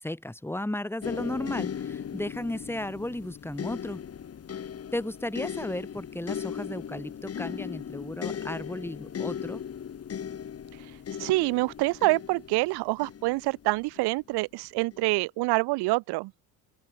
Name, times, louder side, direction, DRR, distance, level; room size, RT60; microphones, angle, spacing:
voice 1, 0.0-4.0 4.9-9.6, left 1 dB, 5° left, 5.9 m, -34 dB
sound 1, 1.0-14.1 14.9-15.1, left 8 dB, 35° left, 3.3 m, -37 dB
voice 2, 11.2-16.3, right 22 dB, 75° right, 1.6 m, -26 dB
open air
cardioid pair, 105°, 40 cm